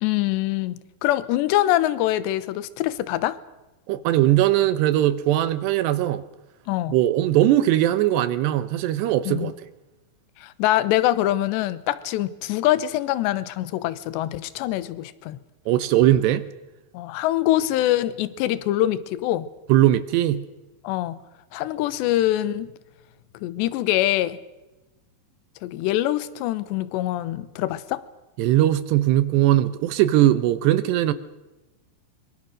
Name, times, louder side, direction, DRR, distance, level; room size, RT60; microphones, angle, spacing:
voice 1, 0.0-3.4 6.7-7.0 9.3-9.5 10.4-15.4 16.9-19.5 20.8-21.2 21.5-22.7 23.4-24.4 25.6-28.0, left 14 dB, 80° left, 3.1 m, -24 dB
voice 2, 3.9-6.2 6.9-9.5 15.7-16.5 19.7-20.5 28.4-31.1, right 13 dB, 75° right, 2.8 m, -20 dB
25.0 x 24.0 x 6.4 m
omnidirectional pair, 5.2 m